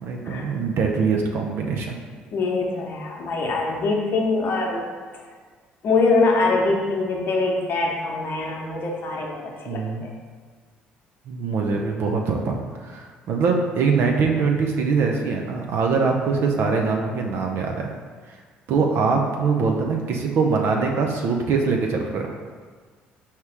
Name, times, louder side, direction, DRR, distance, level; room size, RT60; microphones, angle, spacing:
voice 1, 0.0-2.0 9.7-10.0 11.3-17.9 18.3-18.4 18.7-22.3, right 4 dB, 65° right, 2 dB, 0.5 m, -23 dB
voice 2, 2.3-4.8 5.8-10.1, left 3 dB, 55° left, -1 dB, 0.8 m, -23 dB
4.6 x 2.9 x 3.4 m, 1.5 s
supercardioid pair, 65°, 4 cm